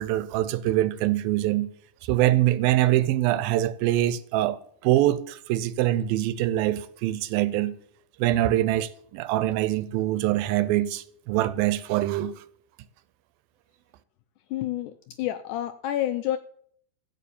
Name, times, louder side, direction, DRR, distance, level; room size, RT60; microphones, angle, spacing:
voice 1, 0.0-1.7 2.0-4.6 4.8-7.8 8.2-12.4, right 14 dB, 80° right, 2.4 m, -24 dB
voice 2, 14.5-16.4, left 12 dB, 85° left, 1.7 m, -29 dB
15.5 x 5.5 x 8.5 m
omnidirectional pair, 4.2 m